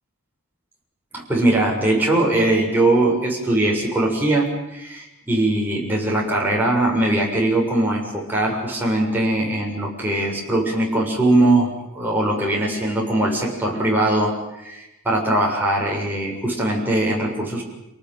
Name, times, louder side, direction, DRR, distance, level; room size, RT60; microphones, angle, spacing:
voice 1, 1.1-17.6, right 1 dB, 10° right, -2 dB, 7.2 m, -21 dB
28.5 x 19.0 x 9.1 m, 0.93 s
head